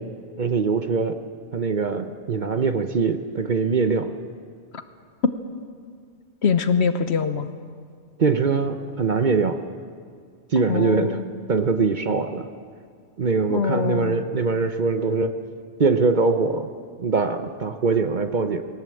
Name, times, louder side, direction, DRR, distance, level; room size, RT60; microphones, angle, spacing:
voice 1, 0.4-1.2 1.5-4.1 8.2-9.6 10.5-11.2 11.5-12.5 13.2-15.4 15.8-16.7 17.0-18.6, right 4 dB, 45° right, 8 dB, 0.9 m, -22 dB
voice 2, 6.4-7.5 10.7-11.2 13.5-14.2, left 6 dB, 65° left, 10 dB, 1.2 m, -23 dB
19.5 x 18.0 x 7.7 m, 2.1 s
omnidirectional pair, 1.2 m